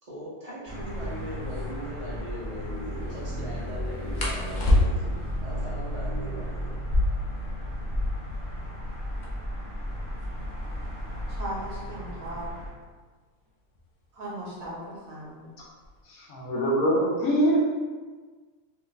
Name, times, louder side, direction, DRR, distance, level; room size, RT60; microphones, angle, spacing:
voice 1, 0.0-6.8, right 1 dB, 35° right, -9 dB, 0.8 m, -39 dB
sound 1, 0.7-12.7, equal, 10° left, 0.9 m, -34 dB
sound 2, 1.5-1.7 4.1-5.3 6.7-8.4 8.7-8.8 9.0-9.6 10.2-12.7 13.8-14.1 14.5-14.9 15.3-16.0, left 1 dB, 60° left, 0.4 m, -27 dB
voice 2, 11.4-12.5 14.1-15.5, right 1 dB, 75° right, -6 dB, 1.3 m, -37 dB
voice 3, 16.0-17.6, equal, 80° left, -4 dB, 1.3 m, -24 dB
3.2 x 2.4 x 3.2 m, 1.4 s
omnidirectional pair, 1.5 m